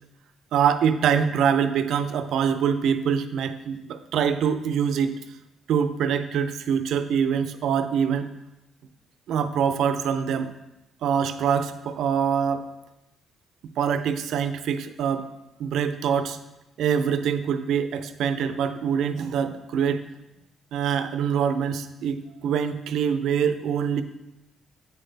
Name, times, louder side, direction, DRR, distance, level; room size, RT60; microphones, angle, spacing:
voice 1, 0.5-5.2 5.7-8.3 9.3-10.5 11.0-12.7 13.8-15.3 15.6-16.4 16.8-20.1 20.7-24.0, right 7 dB, 75° right, 10 dB, 0.5 m, -24 dB
8.6 x 5.7 x 3.3 m, 0.94 s
cardioid pair, 90°, 0 cm